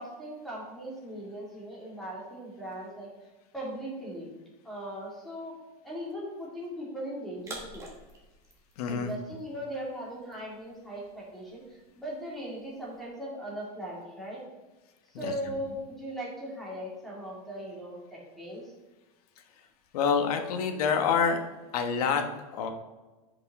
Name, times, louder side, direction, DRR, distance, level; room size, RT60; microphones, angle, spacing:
voice 1, 0.0-3.1 3.5-4.3 4.6-5.5 5.8-7.8 8.9-14.4 15.1-18.7, equal, ahead, -6 dB, 2.4 m, -39 dB
sound 1, 7.4-13.1, right 2 dB, 15° right, 1.5 m, -50 dB
voice 2, 8.8-9.1 15.1-15.6 19.4-19.5 19.9-21.4 21.7-22.3 22.5-22.7, left 6 dB, 70° left, 6 dB, 1.2 m, -27 dB
9.6 x 5.4 x 3.6 m, 1.2 s
supercardioid pair, 155°, 20 cm